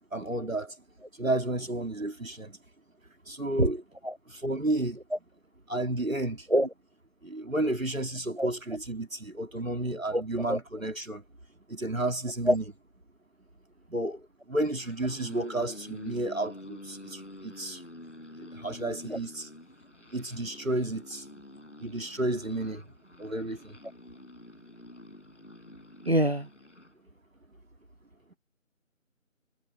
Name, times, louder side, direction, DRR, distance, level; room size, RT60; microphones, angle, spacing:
voice 1, 0.1-0.7 1.2-2.6 3.3-3.8 4.3-5.0 5.7-6.5 7.2-11.2 11.7-12.6 13.9-14.2 14.5-17.8 18.4-19.5 20.1-21.2 21.8-22.8 23.2-23.7, right 1 dB, 75° right, 3.3 m, -31 dB
sound 1, 14.8-26.9, left 1 dB, 60° left, 6.3 m, -48 dB
voice 2, 26.1-26.5, equal, 50° right, 0.5 m, -24 dB
figure-of-eight pair, 175°, 41 cm